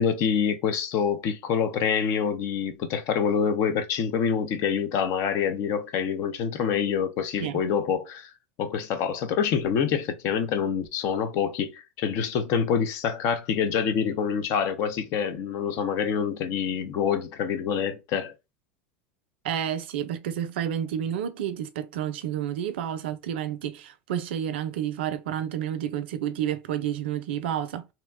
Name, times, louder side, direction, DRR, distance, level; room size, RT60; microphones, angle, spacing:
voice 1, 0.0-8.3 8.6-18.3, left 7 dB, 55° left, 0.7 m, -26 dB
voice 2, 19.4-27.9, right 10 dB, 75° right, 0.4 m, -30 dB
2.8 x 2.2 x 3.4 m
hypercardioid pair, 90°, 6 cm